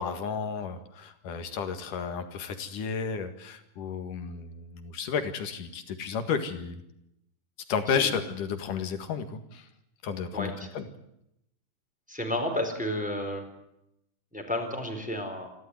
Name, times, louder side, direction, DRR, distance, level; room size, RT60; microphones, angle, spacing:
voice 1, 0.0-6.8 7.7-9.7 10.0-10.9, left 6 dB, 60° left, 8 dB, 3.0 m, -32 dB
voice 2, 12.1-13.4 14.3-15.5, left 1 dB, ahead, 3 dB, 3.7 m, -31 dB
28.5 x 12.5 x 9.6 m, 0.81 s
omnidirectional pair, 4.8 m